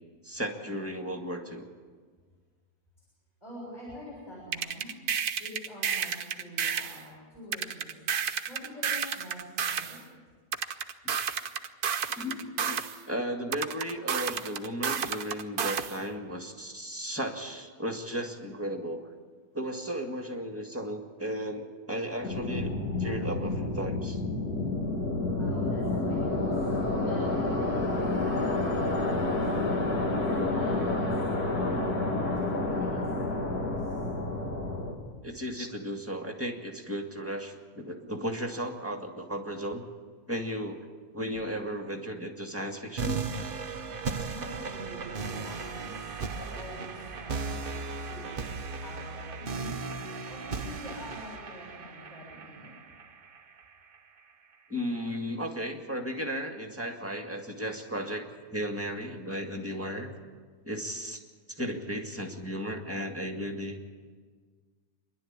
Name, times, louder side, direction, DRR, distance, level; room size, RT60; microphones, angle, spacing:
voice 1, 0.2-1.7 11.0-11.2 12.2-12.8 13.1-19.0 19.5-24.2 35.2-39.8 40.3-40.9 41.1-43.3 44.2-44.3 46.4-46.6 54.7-60.1 60.6-61.2 61.5-63.8, equal, 10° right, 3 dB, 1.9 m, -35 dB
voice 2, 3.4-4.9 5.4-8.0 8.5-10.0 25.3-26.6 27.1-28.4 28.9-29.8 30.3-31.1 31.4-32.2 32.5-34.0 44.3-48.6 48.8-49.7 50.3-52.8, equal, 25° left, -6 dB, 6.9 m, -46 dB
sound 1, 4.5-7.0 7.5-10.0 10.5-13.0 13.5-16.0, right 7 dB, 75° right, 1.4 m, -31 dB
sound 2, 22.2-34.9, left 2 dB, 75° left, 2.8 m, -29 dB
sound 3, 43.0-54.0, right 4 dB, 40° right, 1.0 m, -36 dB
27.5 x 11.5 x 8.8 m, 1.5 s
omnidirectional pair, 1.6 m